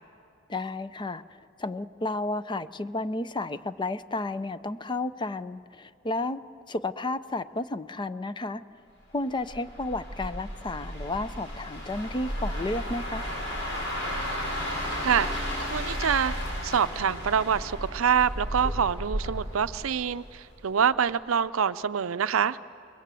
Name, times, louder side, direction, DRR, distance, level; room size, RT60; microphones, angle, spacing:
voice 1, 0.5-1.2 1.6-6.4 6.7-8.6 9.1-13.2, left 2 dB, 25° left, 13 dB, 0.5 m, -32 dB
sound 1, 9.4-20.5 20.8-21.1, equal, 65° left, 6.6 m, -33 dB
voice 2, 15.6-16.3 16.6-22.6, right 7 dB, 80° right, 14 dB, 0.5 m, -26 dB
27.5 x 22.0 x 7.6 m, 2.4 s
head